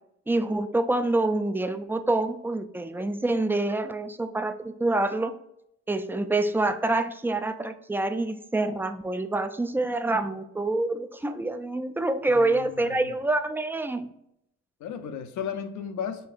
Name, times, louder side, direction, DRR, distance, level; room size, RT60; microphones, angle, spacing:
voice 1, 0.3-5.3 5.9-14.1, right 2 dB, 5° right, 9 dB, 0.4 m, -26 dB
voice 2, 12.3-13.1 14.8-16.3, left 7 dB, 70° left, 8 dB, 0.7 m, -35 dB
5.4 x 3.3 x 2.4 m, 0.77 s
cardioid pair, 90°, 30 cm